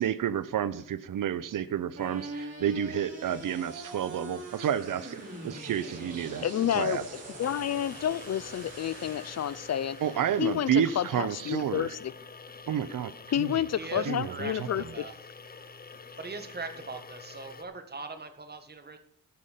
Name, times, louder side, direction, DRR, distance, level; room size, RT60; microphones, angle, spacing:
voice 1, 0.0-6.5 6.7-7.0 10.0-11.9 12.7-13.1 13.4-13.5 14.1-14.5, right 9 dB, 70° right, 16 dB, 0.6 m, -30 dB
sound 1, 2.0-12.0, right 1 dB, 45° right, 4.8 m, -43 dB
voice 2, 6.4-7.1 7.4-10.0 10.4-12.1 13.3-14.8, left 10 dB, 50° left, 19 dB, 0.4 m, -29 dB
sound 2, 7.4-17.6, left 4 dB, 25° left, 0.8 m, -47 dB
voice 3, 13.5-15.1 16.2-19.0, right 3 dB, 30° right, 7 dB, 1.5 m, -40 dB
14.0 x 5.6 x 6.6 m, 0.67 s
wide cardioid pair, 125°, 34 cm